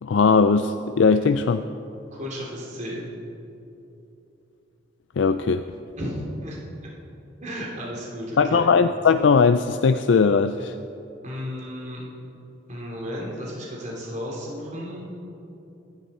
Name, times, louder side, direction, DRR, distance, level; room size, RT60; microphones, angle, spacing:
voice 1, 0.0-1.6 5.2-5.7 8.4-10.7, left 5 dB, 65° left, 10 dB, 0.4 m, -19 dB
voice 2, 2.1-3.1 6.0-6.9 7.4-8.7 11.2-12.0 12.7-15.1, equal, 40° right, -3 dB, 3.0 m, -34 dB
24.5 x 11.5 x 4.3 m, 2.8 s
head